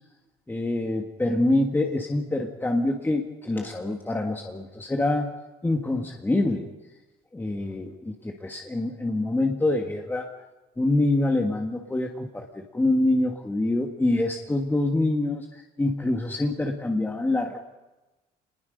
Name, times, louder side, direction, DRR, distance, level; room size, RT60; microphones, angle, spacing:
voice 1, 0.5-5.3 5.6-6.7 7.3-10.3 10.8-17.6, left 2 dB, 10° left, 2 dB, 1.7 m, -25 dB
25.5 x 20.5 x 5.3 m, 1.1 s
cardioid pair, 110°, 17 cm